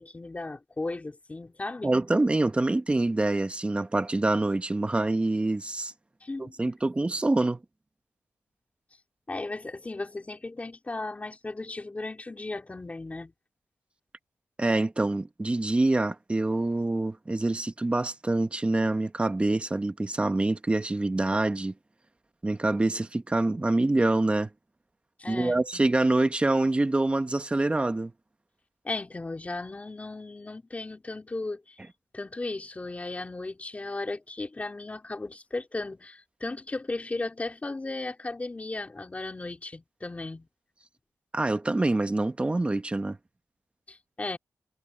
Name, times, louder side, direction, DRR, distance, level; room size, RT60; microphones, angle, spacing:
voice 1, 0.0-1.9 6.2-6.6 9.3-13.3 25.2-25.6 28.8-31.8 32.1-40.5 43.9-44.4, left 2 dB, 25° left, 3.9 m, -36 dB
voice 2, 1.8-5.9 6.6-7.6 14.6-21.7 22.4-24.5 25.3-28.1 41.3-43.2, right 2 dB, 20° right, 1.3 m, -26 dB
wide cardioid pair, 120°, 6 cm